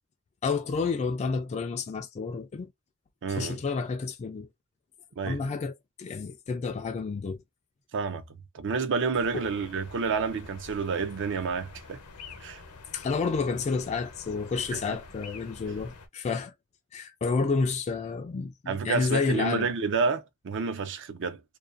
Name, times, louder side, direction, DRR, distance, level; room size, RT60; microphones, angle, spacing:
voice 1, 0.4-2.7 3.3-4.5 5.3-5.7 6.0-7.4 9.3-9.5 12.9-16.5 16.9-19.7, left 4 dB, 30° left, 0.3 m, -30 dB
voice 2, 3.2-3.6 5.2-5.4 7.9-8.2 8.5-12.0 12.4-12.6 18.7-21.4, right 5 dB, 55° right, 0.5 m, -29 dB
sound 1, 9.1-16.1, left 4 dB, 85° left, 0.8 m, -47 dB
2.5 x 2.2 x 2.4 m
head